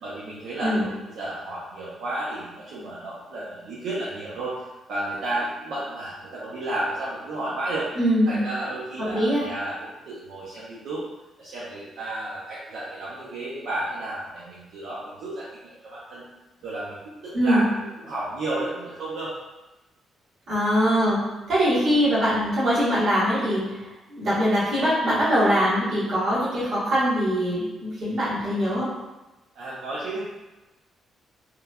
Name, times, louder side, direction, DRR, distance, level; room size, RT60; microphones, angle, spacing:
voice 1, 0.0-7.9 8.3-9.7 10.1-11.0 11.4-16.2 16.6-19.4 29.6-30.3, right 1 dB, 75° right, -9 dB, 0.5 m, -32 dB
voice 2, 8.0-8.4 9.1-9.4 17.3-17.6 20.5-21.2 21.5-28.9, equal, 55° right, -10 dB, 1.3 m, -22 dB
3.0 x 2.1 x 2.3 m, 1.1 s
cardioid pair, 165°, 0 cm